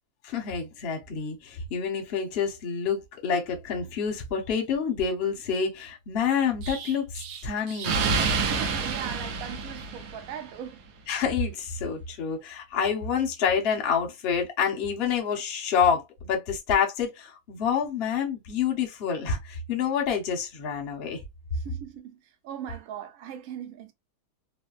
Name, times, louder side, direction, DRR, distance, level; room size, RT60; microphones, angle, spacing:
voice 1, 0.2-8.6 11.1-21.2, left 6 dB, 50° left, 0.8 m, -28 dB
Explosion, 6.6-10.5, right 4 dB, 70° right, 1.1 m, -29 dB
voice 2, 8.5-10.8 21.5-23.9, right 9 dB, 90° right, 0.7 m, -39 dB
3.4 x 2.1 x 2.3 m
omnidirectional pair, 2.2 m